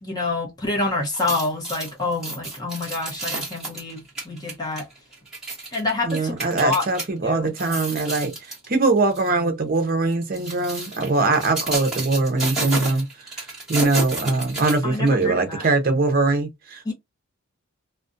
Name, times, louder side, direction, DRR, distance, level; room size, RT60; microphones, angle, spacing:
voice 1, 0.0-4.9 5.7-6.9 7.2-7.5 14.8-15.7 16.8-16.9, left 3 dB, 20° left, 0.7 m, -27 dB
sound 1, 1.0-7.1 7.5-8.7 9.1-9.3 10.1-15.2 15.6-15.7, right 2 dB, 5° right, 1.1 m, -31 dB
voice 2, 6.0-8.3 8.7-13.4 13.7-16.9, right 3 dB, 45° right, 0.6 m, -22 dB
2.4 x 2.1 x 2.5 m
head